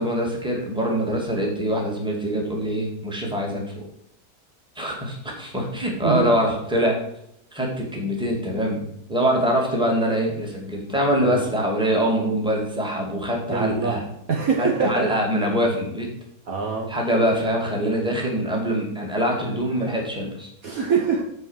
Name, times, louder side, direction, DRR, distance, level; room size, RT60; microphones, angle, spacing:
voice 1, 0.0-3.6 4.8-7.0 7.5-14.0 14.6-16.1 16.9-20.5, equal, 5° right, -1 dB, 2.0 m, -24 dB
voice 2, 6.0-6.3 11.2-11.5 13.5-14.0 14.3-15.1 16.5-16.9 20.6-21.2, right 5 dB, 55° right, -1 dB, 1.4 m, -24 dB
9.0 x 4.8 x 7.3 m, 0.77 s
omnidirectional pair, 2.0 m